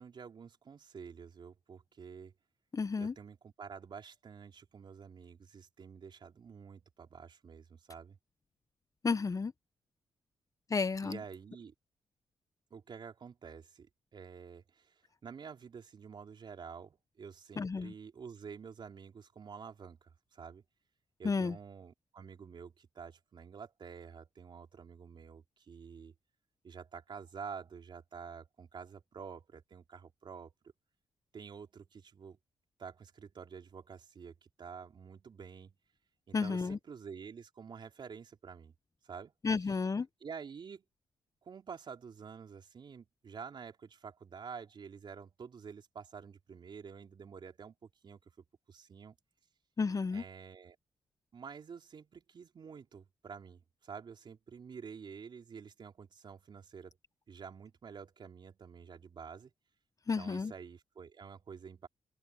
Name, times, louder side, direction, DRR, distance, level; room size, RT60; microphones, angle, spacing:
voice 1, 0.0-2.3 3.0-8.2 11.0-11.7 12.7-20.6 21.2-26.1 26.6-30.5 31.3-32.4 32.8-35.7 36.3-38.7 39.0-39.3 40.2-40.8 41.4-48.2 48.7-49.2 50.1-50.8 51.3-57.0 57.3-59.5 60.2-61.9, right 6 dB, 60° right, 3.7 m, -49 dB
voice 2, 2.7-3.1 9.0-9.5 10.7-11.2 17.6-17.9 21.2-21.6 36.3-36.8 39.4-40.1 49.8-50.2 60.1-60.5, left 4 dB, 40° left, 1.0 m, -32 dB
open air
supercardioid pair, 55°, 9 cm